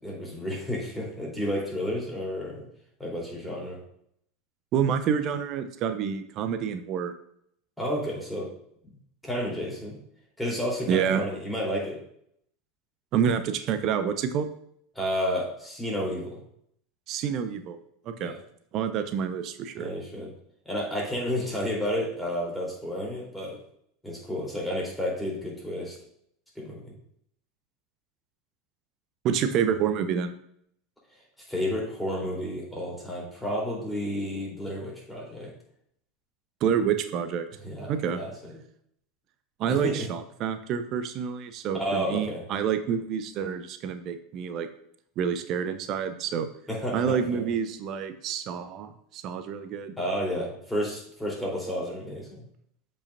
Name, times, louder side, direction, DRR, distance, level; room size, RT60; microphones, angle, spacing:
voice 1, 0.0-2.7 3.0-3.8 7.8-8.5 9.2-10.0 10.4-12.0 15.0-16.4 18.2-18.4 19.8-20.3 20.7-23.6 24.0-26.0 26.6-26.9 31.5-35.5 37.6-38.5 39.7-40.1 41.7-42.4 46.7-47.5 50.0-52.4, equal, 5° left, -3 dB, 3.6 m, -31 dB
voice 2, 4.7-7.1 10.9-11.2 13.1-14.5 17.1-17.8 18.1-18.3 18.7-19.9 29.2-30.3 36.6-37.5 37.9-38.2 39.6-44.7 45.2-46.5 46.9-49.9, right 8 dB, 40° right, 10 dB, 0.7 m, -28 dB
13.0 x 5.5 x 2.6 m, 0.69 s
figure-of-eight pair, 80°, 0 cm